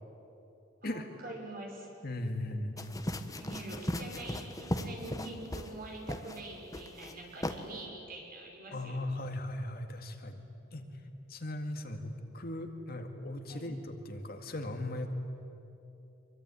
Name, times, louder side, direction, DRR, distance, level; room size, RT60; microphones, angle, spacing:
voice 1, 0.8-1.9 2.8-2.9 3.3-9.0 10.7-10.8 13.5-13.7, right 2 dB, 50° right, 0 dB, 6.1 m, -45 dB
voice 2, 2.0-2.8 8.7-10.4 10.7-10.9 11.3-15.2, left 1 dB, 50° left, 5 dB, 2.1 m, -38 dB
sound 1, 2.8-5.8 6.1-6.4 6.7-7.1 7.4-7.6, left 1 dB, 20° left, 1.3 m, -37 dB
25.5 x 23.5 x 9.8 m, 2.8 s
head